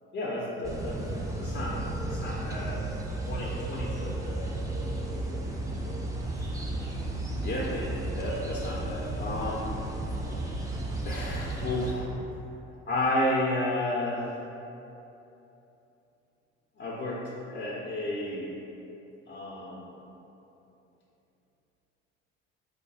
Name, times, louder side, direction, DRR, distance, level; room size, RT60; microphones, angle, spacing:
voice 1, 0.1-1.0 1.4-1.8 2.1-2.8 3.3-5.0 6.3-6.5 6.9-7.0 7.4-9.8 11.0-12.2 12.9-14.3 16.8-17.2 17.5-18.5 19.3-19.9, left 1 dB, 30° left, -6 dB, 0.6 m, -32 dB
sound 1, 0.6-11.9, right 2 dB, 10° right, 0.5 m, -33 dB
3.6 x 2.2 x 4.0 m, 3.0 s
hypercardioid pair, 55°, 36 cm